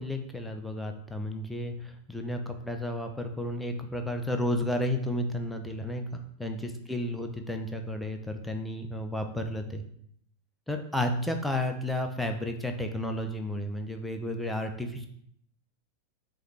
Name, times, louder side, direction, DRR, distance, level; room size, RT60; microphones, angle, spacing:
voice 1, 0.0-9.8 10.7-15.1, left 1 dB, ahead, 4 dB, 0.4 m, -32 dB
4.8 x 2.4 x 3.1 m, 0.69 s
figure-of-eight pair, 90°, 0 cm